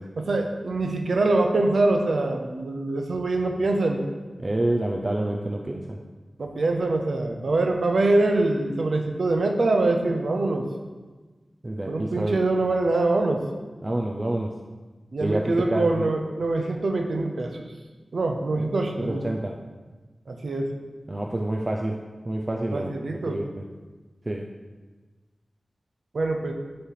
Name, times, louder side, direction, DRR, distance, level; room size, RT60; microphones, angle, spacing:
voice 1, 0.2-4.0 6.4-10.7 11.9-13.4 15.1-17.5 18.1-19.2 20.3-20.7 22.7-23.4 26.1-26.5, right 2 dB, 80° right, 4 dB, 0.8 m, -24 dB
voice 2, 4.4-6.0 11.6-12.4 13.8-14.5 15.2-16.1 18.6-18.7 19.0-19.5 21.1-22.0 22.3-22.9 23.2-23.5 24.3-24.5, right 1 dB, 35° right, 1 dB, 0.5 m, -27 dB
8.2 x 3.3 x 5.7 m, 1.3 s
wide cardioid pair, 80°, 0 cm